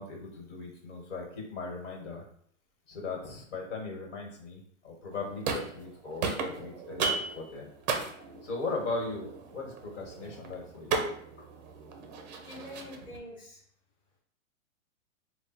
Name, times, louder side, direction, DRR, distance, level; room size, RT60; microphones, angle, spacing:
voice 1, 0.0-2.2 2.9-7.7 8.4-11.0, left 3 dB, 60° left, 0 dB, 1.6 m, -38 dB
sound 1, 5.1-5.9 6.2-13.2, right 4 dB, 35° right, 0.5 m, -36 dB
voice 2, 12.3-13.6, left 1 dB, 10° left, -6 dB, 1.1 m, -45 dB
3.5 x 2.3 x 4.2 m, 0.63 s
hypercardioid pair, 155°, 39 cm